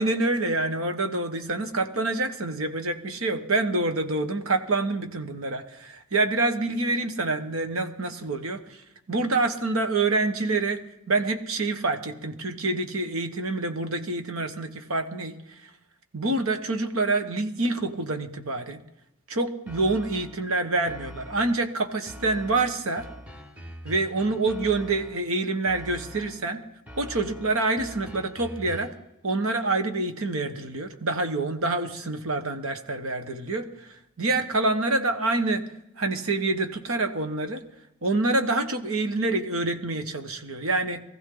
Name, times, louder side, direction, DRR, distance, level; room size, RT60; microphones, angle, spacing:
voice 1, 0.0-8.8 9.1-10.8 11.1-15.4 16.1-18.8 19.3-23.1 23.8-26.6 27.0-28.9 29.2-33.9 34.2-35.6 36.0-37.6 38.0-41.0, right 2 dB, 80° right, 7 dB, 1.5 m, -26 dB
sound 1, 19.7-20.5 20.9-21.7 22.1-25.3 25.7-26.5 26.9-29.1, equal, 5° right, 1.6 m, -43 dB
20.0 x 15.0 x 4.0 m, 0.81 s
head